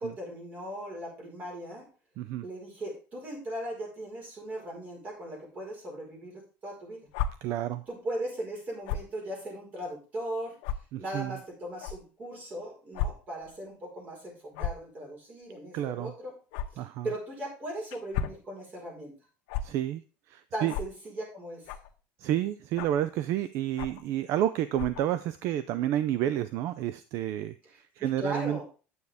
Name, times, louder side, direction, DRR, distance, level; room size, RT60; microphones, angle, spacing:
voice 1, 0.0-1.9 2.4-7.0 7.9-10.6 11.0-16.3 16.7-19.1 20.5-21.7 27.6-28.6, right 1 dB, 30° right, -1 dB, 4.7 m, -38 dB
sound 1, 7.1-7.3 8.8-9.1 9.8-9.9 10.6-10.8 11.8-11.9 12.9-13.1 13.4-13.6 14.5-14.8 16.5-16.7 17.9-18.4 19.5-19.6 20.7-20.9 21.7-21.9 22.8-23.0 23.8-24.0 24.7-25.0, left 8 dB, 85° left, 1.1 m, -32 dB
voice 2, 7.4-7.8 10.9-11.3 15.7-16.1 16.8-17.0 19.6-20.0 20.3-20.7 22.2-28.6, right 12 dB, 55° right, 14 dB, 0.5 m, -30 dB
9.5 x 8.2 x 3.5 m, 0.34 s
cardioid pair, 155°, 6 cm